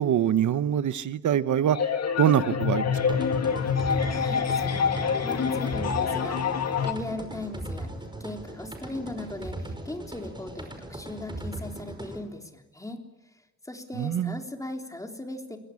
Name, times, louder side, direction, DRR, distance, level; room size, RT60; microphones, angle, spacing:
voice 1, 0.0-1.8 2.2-3.0 14.0-14.4, right 10 dB, 80° right, 13 dB, 1.1 m, -24 dB
sound 1, 1.7-6.9, left 6 dB, 60° left, 2.4 m, -26 dB
sound 2, 3.0-12.2, right 1 dB, 15° right, 5.2 m, -39 dB
voice 2, 4.1-6.4 6.8-13.0 13.6-15.6, left 2 dB, 10° left, 3 dB, 3.6 m, -38 dB
29.0 x 22.0 x 8.6 m, 1.1 s
cardioid pair, 120°, 29 cm